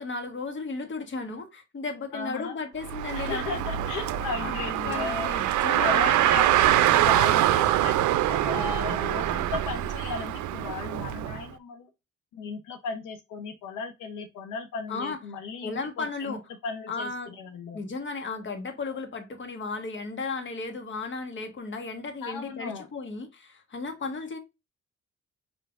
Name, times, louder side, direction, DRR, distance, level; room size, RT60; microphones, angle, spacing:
voice 1, 0.0-3.6 4.4-4.5 4.8-6.2 14.9-15.2 15.6-16.4 16.9-17.3 17.7-24.4, left 3 dB, 40° left, 1.3 m, -35 dB
voice 2, 2.1-2.5 3.1-11.9 12.3-17.8 22.2-22.9, left 5 dB, 85° left, 1.0 m, -36 dB
Car, 2.8-11.4, right 13 dB, 75° right, 0.5 m, -24 dB
5.5 x 3.4 x 2.4 m
cardioid pair, 90°, 30 cm